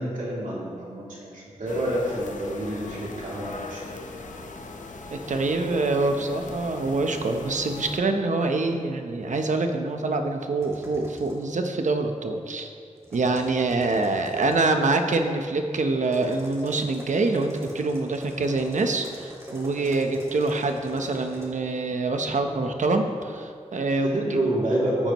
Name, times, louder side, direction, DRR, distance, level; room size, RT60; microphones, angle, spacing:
voice 1, 0.0-4.0 24.0-25.1, right 1 dB, 90° right, -6 dB, 2.9 m, -28 dB
sound 1, 1.7-8.0, left 3 dB, 80° left, 0.8 m, -40 dB
voice 2, 5.1-12.7 13.1-24.2, right 3 dB, 70° right, 5 dB, 0.9 m, -25 dB
sound 2, 10.6-11.5 13.0-14.7 16.0-21.5, equal, 20° right, 2.5 m, -44 dB
14.5 x 9.0 x 3.1 m, 2.2 s
wide cardioid pair, 90°, 13 cm